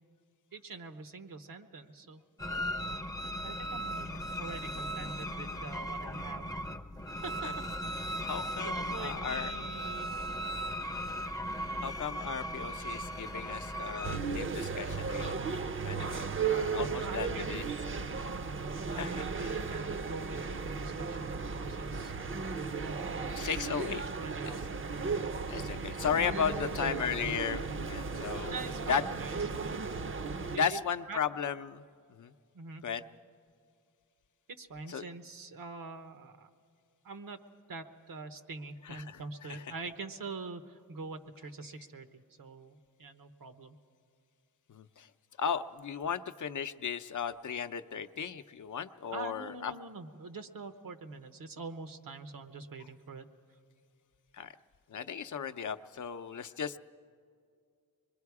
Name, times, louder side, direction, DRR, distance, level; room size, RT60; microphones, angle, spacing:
voice 1, 0.5-2.2 3.4-6.5 7.2-7.5 8.1-8.3 8.6-10.2 17.0-17.5 18.2-18.5 18.9-22.1 22.8-23.3 24.1-24.6 25.0-25.2 26.2-26.8 28.5-29.8 30.5-30.8 31.1-31.2 32.5-32.8 34.5-36.5 37.0-37.4 37.7-43.8 49.1-53.3, right 4 dB, 80° right, 8 dB, 1.1 m, -44 dB
sound 1, 2.4-14.2, equal, 10° left, 0.6 m, -37 dB
voice 2, 8.2-9.5 11.8-15.6 15.8-17.6 18.9-19.6 23.3-24.0 24.4-24.6 25.5-29.0 30.6-31.8 32.1-32.3 32.8-33.0 34.9-35.0 38.9-39.2 39.5-39.6 44.7-45.1 45.4-49.7 54.3-54.5 54.9-56.8, left 7 dB, 60° left, 10 dB, 0.6 m, -35 dB
sound 2, 14.0-30.6, right 5 dB, 40° right, 0.6 m, -35 dB
25.0 x 22.0 x 4.8 m, 2.3 s
wide cardioid pair, 90°, 34 cm